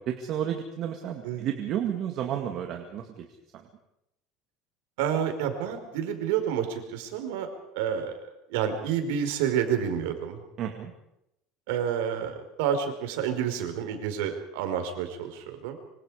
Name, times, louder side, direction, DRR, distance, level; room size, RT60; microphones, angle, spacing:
voice 1, 0.1-3.3 10.6-10.9, right 9 dB, 40° right, 4 dB, 2.1 m, -31 dB
voice 2, 5.0-7.5 7.7-10.4 11.7-15.8, right 8 dB, 90° right, 6 dB, 4.8 m, -29 dB
26.0 x 25.0 x 5.1 m, 0.84 s
cardioid pair, 165°, 0 cm